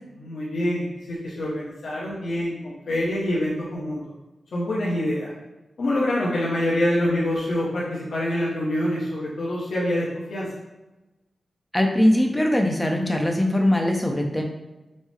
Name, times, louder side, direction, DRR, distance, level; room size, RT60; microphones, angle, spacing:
voice 1, 0.2-4.0 4.5-5.3 5.8-10.5, left 1 dB, 80° left, -7 dB, 0.8 m, -26 dB
voice 2, 11.7-14.4, left 1 dB, 15° left, 2 dB, 0.6 m, -21 dB
5.4 x 2.0 x 3.2 m, 1.0 s
cardioid pair, 60°, 0 cm